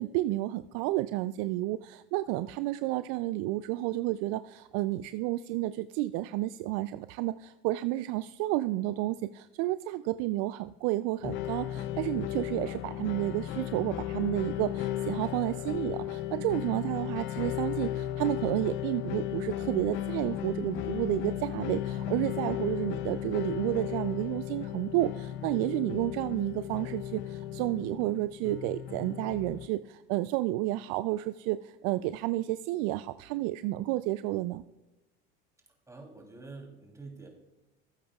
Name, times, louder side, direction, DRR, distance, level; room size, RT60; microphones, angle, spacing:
voice 1, 0.0-34.6, right 16 dB, 55° right, 13 dB, 0.4 m, -31 dB
sound 1, 11.2-29.7, left 12 dB, 40° left, 0.5 m, -35 dB
voice 2, 35.9-37.3, right 3 dB, 10° right, 0 dB, 3.0 m, -46 dB
18.0 x 8.6 x 2.3 m, 1.0 s
hypercardioid pair, 100°, 31 cm